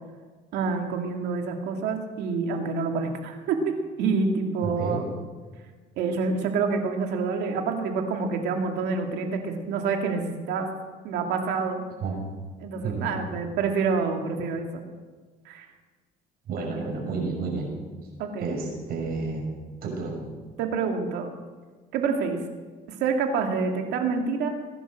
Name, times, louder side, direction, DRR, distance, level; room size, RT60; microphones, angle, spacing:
voice 1, 0.5-5.0 6.0-10.7 11.0-11.8 12.6-14.8 15.5-15.7 16.6-16.7 18.2-18.6 20.6-21.3 21.9-22.4 23.0-24.5, right 4 dB, 85° right, 3 dB, 2.4 m, -27 dB
voice 2, 4.6-5.1 12.0-12.2 12.8-13.1 16.5-17.7 18.4-19.4 19.8-20.2, right 4 dB, 65° right, 0 dB, 6.4 m, -30 dB
20.5 x 11.0 x 6.5 m, 1.4 s
cardioid pair, 110°, 17 cm